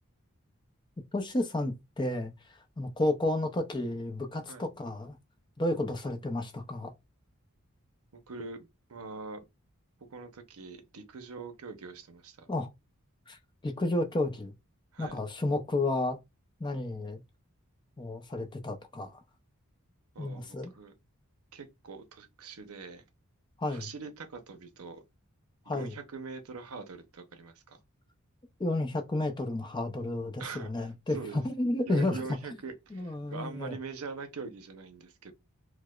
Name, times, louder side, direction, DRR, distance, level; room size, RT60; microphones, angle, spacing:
voice 1, 1.1-2.3 2.8-5.2 5.6-6.9 12.5-12.7 13.3-13.4 13.6-14.5 15.0-16.2 16.6-17.2 18.0-19.2 20.2-20.7 23.6-23.9 25.7-26.0 28.6-32.3 32.9-33.8, left 2 dB, 20° left, 0.4 m, -31 dB
voice 2, 8.1-9.4 10.1-12.5 14.9-15.2 20.1-20.9 21.5-23.0 23.6-25.0 25.7-27.8 30.4-31.4 31.9-35.3, right 4 dB, 80° right, 0.7 m, -43 dB
4.7 x 2.0 x 2.3 m
head